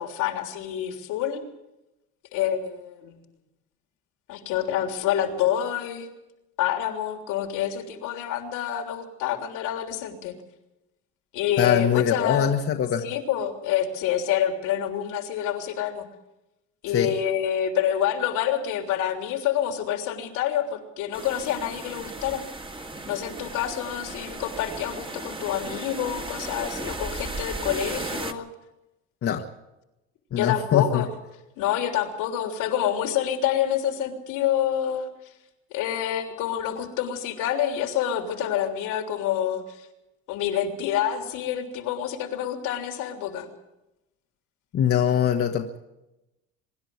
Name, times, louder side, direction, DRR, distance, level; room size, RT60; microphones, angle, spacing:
voice 1, 0.0-1.4 2.3-3.2 4.3-6.1 6.6-10.3 11.3-12.6 13.0-16.1 16.8-22.4 23.1-28.5 30.4-31.1 31.6-35.1 35.7-39.9 40.3-43.5, left 10 dB, 75° left, 5 dB, 3.4 m, -27 dB
voice 2, 11.6-13.0 16.9-17.1 29.2-29.4 30.3-31.0 44.7-45.8, left 9 dB, 45° left, 3 dB, 1.6 m, -23 dB
sound 1, 21.1-28.3, right 2 dB, 15° right, 1.9 m, -35 dB
24.5 x 11.0 x 9.6 m, 0.95 s
supercardioid pair, 95°, 32 cm